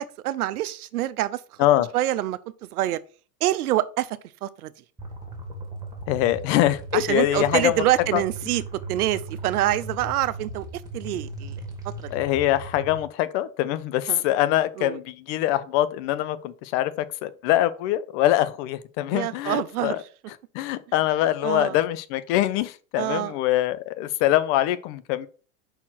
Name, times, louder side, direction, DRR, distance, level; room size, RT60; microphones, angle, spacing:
voice 1, 0.0-1.4 1.9-2.4 2.7-3.0 3.4-4.7 6.9-8.6 8.9-10.7 10.9-11.6 12.0-12.1 14.1-14.2 14.8-15.0 19.1-20.0 21.4-21.8 23.0-23.4, right 14 dB, 85° right, 0.8 m, -26 dB
voice 2, 1.6-1.9 6.1-7.8 8.1-8.2 12.1-20.0 20.5-25.3, left 14 dB, 50° left, 0.8 m, -23 dB
sound 1, 5.0-13.0, right 2 dB, 10° right, 2.1 m, -37 dB
5.8 x 4.5 x 5.7 m
supercardioid pair, 120°, 44 cm